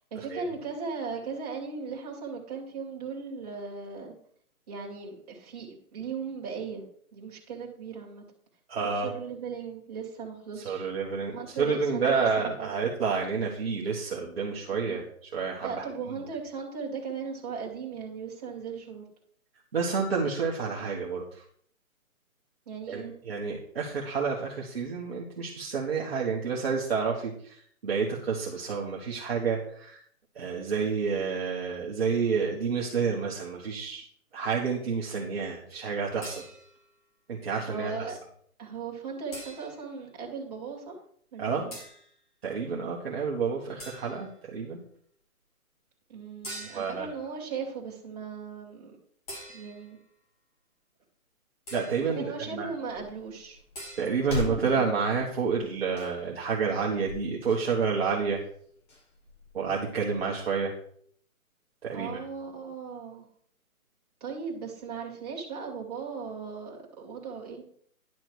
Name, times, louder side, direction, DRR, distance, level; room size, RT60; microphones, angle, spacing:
voice 1, 0.1-4.2 4.7-6.8 7.1-8.2 8.8-10.9 11.3-12.7 14.7-15.0 15.6-19.1 22.7-23.1 37.7-38.1 38.6-41.0 41.3-41.7 46.1-49.0 49.5-50.0 52.1-53.6 54.3-54.9 61.9-63.3 64.2-67.7, right 5 dB, 25° right, -3 dB, 2.2 m, -37 dB
voice 2, 8.7-9.1 10.5-15.9 19.7-21.4 22.9-30.0 30.3-34.0 34.3-36.4 37.3-37.9 41.4-41.6 42.4-44.8 46.7-47.1 51.7-52.7 54.0-58.4 59.5-60.7 61.8-62.2, right 5 dB, 45° right, -3 dB, 1.5 m, -29 dB
sound 1, 36.2-36.9 39.3-40.0 41.7-42.1 43.8-44.4 46.4-47.1 49.3-50.0 51.7-52.1 53.7-54.1, right 1 dB, 25° left, 2.9 m, -44 dB
sound 2, 52.9-60.3, left 2 dB, 75° left, 5.0 m, -42 dB
10.5 x 6.2 x 4.7 m, 0.62 s
hypercardioid pair, 175°, 43 cm